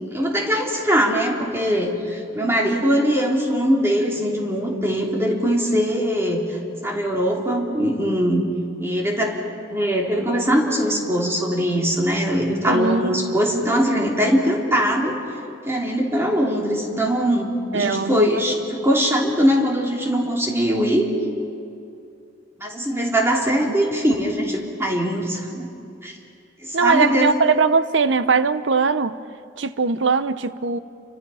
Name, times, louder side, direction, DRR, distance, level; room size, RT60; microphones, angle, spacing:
voice 1, 0.1-6.6 6.8-8.4 8.8-9.3 9.7-15.2 15.7-21.1 22.6-25.7 26.0-26.1 26.6-27.3, equal, 15° right, -1 dB, 3.2 m, -21 dB
voice 2, 12.7-13.3 17.7-18.4 23.6-23.9 26.7-29.2 29.6-30.8, right 4 dB, 80° right, 13 dB, 0.8 m, -20 dB
29.5 x 24.5 x 5.7 m, 2.5 s
head